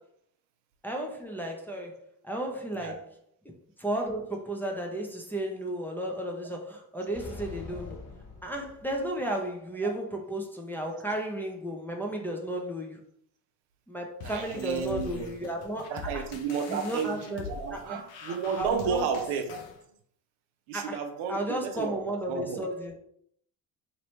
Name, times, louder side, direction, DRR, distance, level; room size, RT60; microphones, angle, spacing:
voice 1, 0.8-2.0 2.2-3.0 3.8-8.0 8.4-13.0 13.9-16.2 16.7-17.5 17.7-18.0 18.6-19.0 20.7-21.0 21.3-22.9, right 1 dB, 5° left, -1 dB, 0.7 m, -33 dB
sound 1, 7.1-9.3, left 3 dB, 40° left, 1.4 m, -44 dB
sound 2, 14.2-19.8, left 4 dB, 70° left, 0.7 m, -43 dB
voice 2, 14.2-15.4 15.9-19.6 20.7-22.6, right 6 dB, 75° right, 5 dB, 0.7 m, -32 dB
3.0 x 2.8 x 3.0 m, 0.69 s
hypercardioid pair, 60°, 49 cm